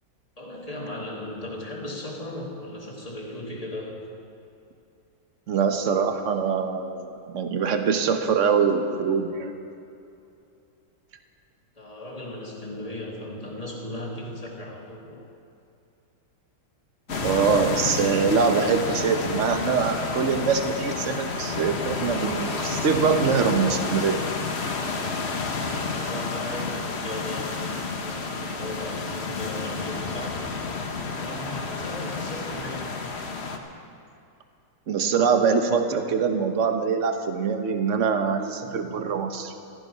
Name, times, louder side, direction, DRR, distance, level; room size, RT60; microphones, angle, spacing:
voice 1, 0.4-4.0 11.7-15.2 25.6-30.4 31.0-33.0, left 1 dB, 20° left, -2 dB, 2.4 m, -37 dB
voice 2, 5.5-9.5 17.2-24.2 34.9-39.5, right 6 dB, 50° right, 7 dB, 1.2 m, -24 dB
sound 1, 17.1-33.6, left 4 dB, 40° left, 1.2 m, -30 dB
15.0 x 14.0 x 5.5 m, 2.6 s
omnidirectional pair, 1.9 m